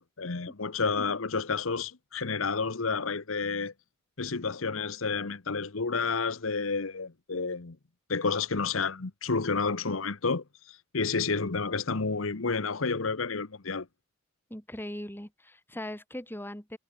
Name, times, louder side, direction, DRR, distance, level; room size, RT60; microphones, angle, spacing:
voice 1, 0.0-3.7 4.2-7.8 8.1-13.9, left 4 dB, 70° left, 1.1 m, -30 dB
voice 2, 14.5-16.8, left 1 dB, 10° left, 2.9 m, -40 dB
head